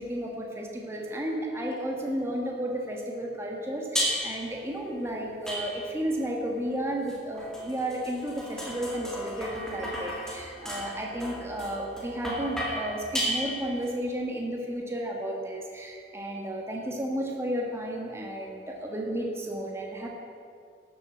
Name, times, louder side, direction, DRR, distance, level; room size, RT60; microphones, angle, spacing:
voice 1, 0.0-20.1, right 1 dB, 15° right, -1 dB, 1.4 m, -33 dB
sound 1, 4.0-4.5 5.5-6.1 7.1-13.9, equal, 5° left, 2.2 m, -34 dB
12.5 x 7.7 x 7.2 m, 2.3 s
head